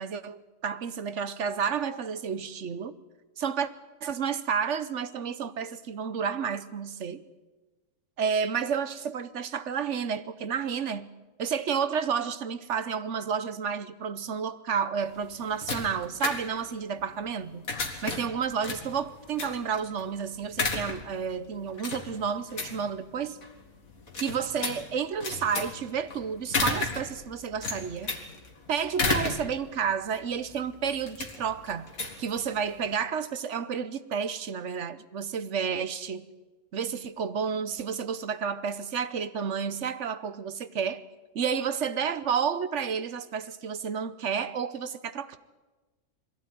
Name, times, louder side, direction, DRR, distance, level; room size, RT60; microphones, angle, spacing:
voice 1, 0.0-2.9 3.4-3.7 4.0-7.2 8.2-11.1 11.4-17.7 18.0-23.4 24.2-28.1 28.7-31.9 32.2-36.3 36.7-41.0 41.3-45.4, right 7 dB, 60° right, 1.1 m, -31 dB
sound 1, 15.0-32.9, left 3 dB, 70° left, 2.5 m, -35 dB
22.0 x 15.5 x 9.3 m
omnidirectional pair, 1.5 m